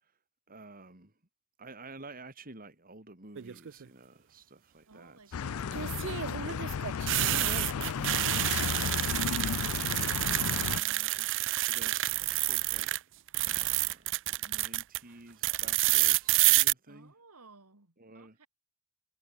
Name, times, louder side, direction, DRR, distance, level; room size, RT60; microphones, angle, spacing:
voice 1, 0.5-1.1 1.6-6.1 6.8-6.9 7.2-9.1 10.5-12.9 13.4-17.1 18.0-18.4, right 2 dB, 40° right, 3.4 m, -50 dB
sound 1, 3.4-3.8 5.7-13.0 13.3-15.0 15.4-16.7, right 17 dB, 55° right, 0.5 m, -29 dB
voice 2, 4.9-6.2 16.9-18.5, right 3 dB, 85° right, 3.2 m, -57 dB
sound 2, 5.3-10.8, left 7 dB, 65° left, 0.4 m, -33 dB
head